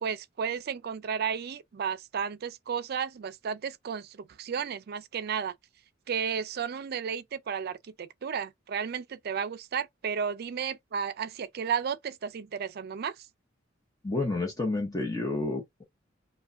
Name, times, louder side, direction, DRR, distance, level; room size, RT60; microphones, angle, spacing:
voice 1, 0.0-5.5 6.1-13.1, right 7 dB, 55° right, 0.4 m, -33 dB
voice 2, 14.0-15.8, left 2 dB, 20° left, 0.8 m, -30 dB
4.7 x 2.2 x 2.5 m
head